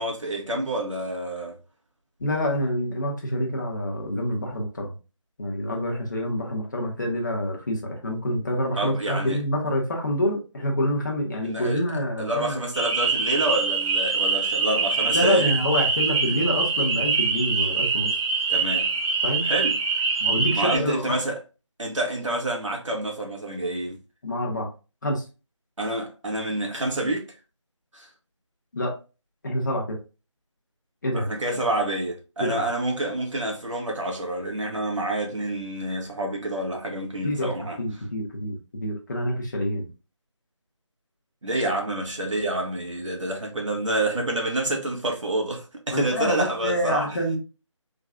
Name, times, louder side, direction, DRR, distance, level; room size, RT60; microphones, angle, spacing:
voice 1, 0.0-1.6 8.8-9.4 11.4-11.8 12.2-15.5 16.2-16.4 18.5-18.9 19.4-19.8 20.5-21.4 21.8-24.0 25.8-27.3 27.9-28.1 31.1-37.8 41.4-47.2, right 1 dB, 70° right, 1.4 m, -28 dB
voice 2, 2.2-4.9 5.4-12.6 15.1-18.1 19.2-19.5 20.2-21.2 24.2-24.7 25.0-25.2 28.7-28.9 29.4-30.0 31.0-31.3 32.4-32.6 37.2-37.5 37.8-39.9 45.9-47.4, left 1 dB, 35° left, 1.0 m, -27 dB
sound 1, 12.7-20.8, right 5 dB, 10° right, 0.6 m, -24 dB
3.7 x 3.0 x 2.3 m
figure-of-eight pair, 170°, 16 cm